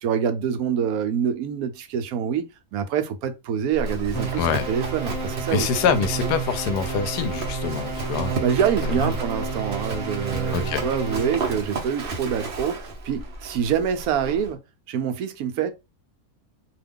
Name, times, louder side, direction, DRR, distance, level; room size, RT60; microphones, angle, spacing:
voice 1, 0.0-5.7 8.4-14.6 14.9-15.7, right 8 dB, 70° right, 1.0 m, -26 dB
Livestock farm animals working animals, 3.7-14.5, right 2 dB, 50° right, 0.7 m, -33 dB
sound 1, 4.1-11.7, right 5 dB, 15° left, 0.9 m, -31 dB
voice 2, 4.3-4.7 5.5-8.4 8.9-9.1 10.5-10.9, left 6 dB, 85° left, 1.1 m, -25 dB
2.8 x 2.3 x 3.5 m
omnidirectional pair, 1.7 m